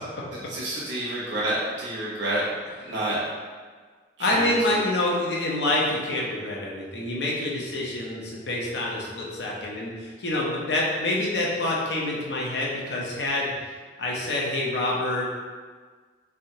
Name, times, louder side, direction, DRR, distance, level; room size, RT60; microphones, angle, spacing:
voice 1, 0.3-2.4 2.8-3.2 4.2-4.8, right 1 dB, 85° right, -7 dB, 1.0 m, -29 dB
voice 2, 4.2-13.5 14.0-15.3, left 1 dB, 70° left, -3 dB, 0.7 m, -27 dB
3.6 x 3.3 x 2.8 m, 1.5 s
head